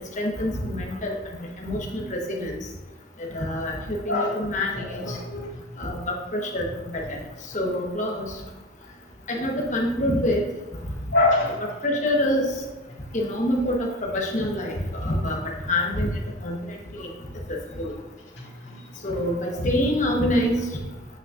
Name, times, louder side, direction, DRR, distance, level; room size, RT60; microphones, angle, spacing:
voice 1, 0.2-1.2 1.6-2.6 3.2-5.2 5.8-6.7 6.9-7.2 7.5-8.3 9.3-10.4 11.4-11.5 11.8-12.5 13.1-16.1 16.4-17.1 17.5-17.9 19.0-20.6, left 1 dB, 40° left, 0 dB, 1.3 m, -26 dB
voice 2, 4.7-5.9 11.1-11.6 18.4-18.8, left 2 dB, 80° left, -5 dB, 2.3 m, -25 dB
9.0 x 6.1 x 2.6 m, 1.2 s
head